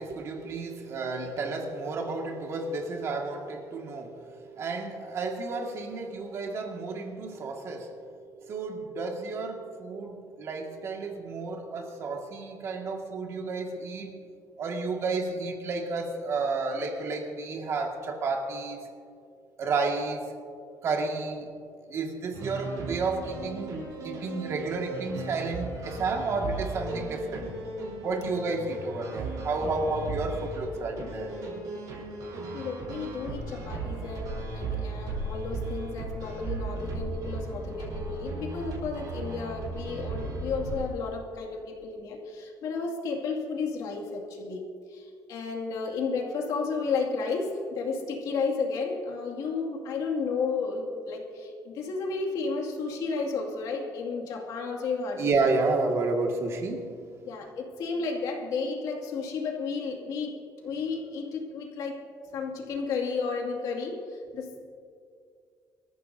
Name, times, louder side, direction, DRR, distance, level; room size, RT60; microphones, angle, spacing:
voice 1, 0.0-14.2 14.6-18.8 19.6-20.2 20.8-21.5 21.9-27.5 28.0-31.3 55.2-56.9, right 3 dB, 45° right, 2 dB, 2.0 m, -31 dB
sound 1, 22.3-40.8, right 2 dB, 60° right, 4.5 m, -36 dB
voice 2, 32.5-44.6 44.9-55.3 57.2-60.4 60.6-62.0 62.3-64.6, left 4 dB, 65° left, 0 dB, 2.4 m, -32 dB
25.0 x 14.0 x 2.8 m, 2.3 s
cardioid pair, 160°, 7 cm